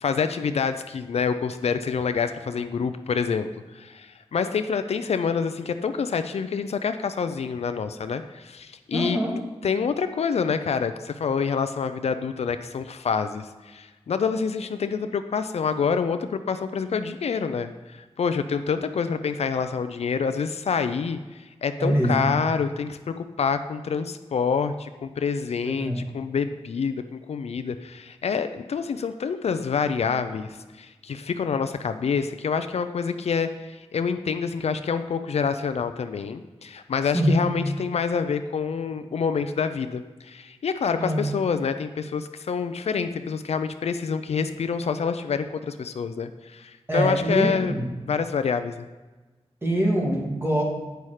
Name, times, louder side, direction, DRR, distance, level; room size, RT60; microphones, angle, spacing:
voice 1, 0.0-9.2 9.6-47.8 48.1-48.9, left 6 dB, 70° left, 9 dB, 0.5 m, -27 dB
voice 2, 8.9-9.4 21.8-22.3 25.6-26.0 37.1-37.4 40.9-41.3 46.9-47.9 49.6-50.6, right 1 dB, 20° right, -2 dB, 2.0 m, -24 dB
9.2 x 5.6 x 4.8 m, 1.2 s
wide cardioid pair, 130°, 11 cm